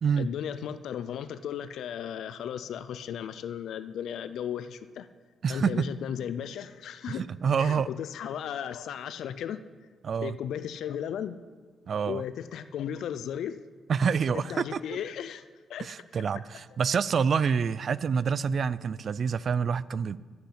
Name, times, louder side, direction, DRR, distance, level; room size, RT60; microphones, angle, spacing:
voice 1, 0.2-5.1 5.5-7.2 7.6-9.6 10.2-11.4 12.1-13.6 14.3-15.4 15.7-15.9, left 9 dB, 75° left, 13 dB, 0.4 m, -35 dB
voice 2, 5.4-5.9 7.1-7.9 10.0-10.4 11.9-12.2 13.9-14.8 15.8-20.2, right 6 dB, 50° right, 19 dB, 0.4 m, -27 dB
10.5 x 8.2 x 8.1 m, 1.5 s
cardioid pair, 115°, 0 cm